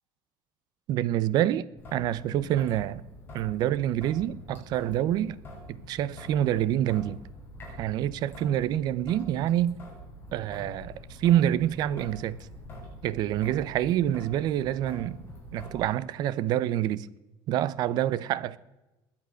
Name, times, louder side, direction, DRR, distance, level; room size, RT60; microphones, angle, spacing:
voice 1, 0.9-1.6 1.9-3.0 3.3-5.4 5.9-7.2 7.8-9.8 10.3-12.4 13.0-15.2 15.5-17.1 17.5-18.6, right 12 dB, 45° right, 0.6 m, -27 dB
Traffic noise roadway noise / Drip / Trickle dribble, 1.8-15.8, left 1 dB, 20° left, 6.3 m, -45 dB
21.0 x 8.8 x 6.4 m
cardioid pair, 175°, 10 cm